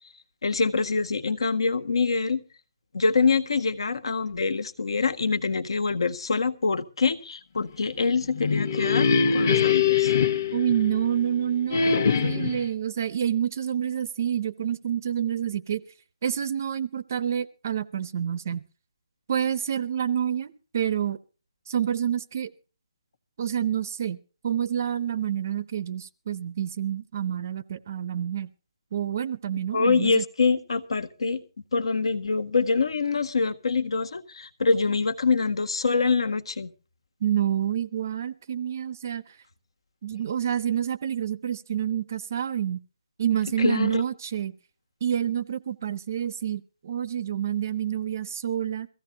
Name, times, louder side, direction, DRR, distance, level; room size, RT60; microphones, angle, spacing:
voice 1, 0.4-2.4 2.9-10.1 29.7-31.4 31.7-36.7 43.6-44.0, left 4 dB, 60° left, 1.7 m, -25 dB
sound 1, 8.2-11.2 11.7-12.7, left 6 dB, 25° left, 1.3 m, -23 dB
voice 2, 10.5-15.8 16.2-18.6 19.3-21.2 21.7-22.5 23.4-24.2 24.4-28.5 28.9-30.2 37.2-39.2 40.0-42.8 43.2-44.5 45.0-48.9, right 9 dB, 30° right, 0.7 m, -28 dB
22.5 x 15.5 x 2.8 m
hypercardioid pair, 175°, 3 cm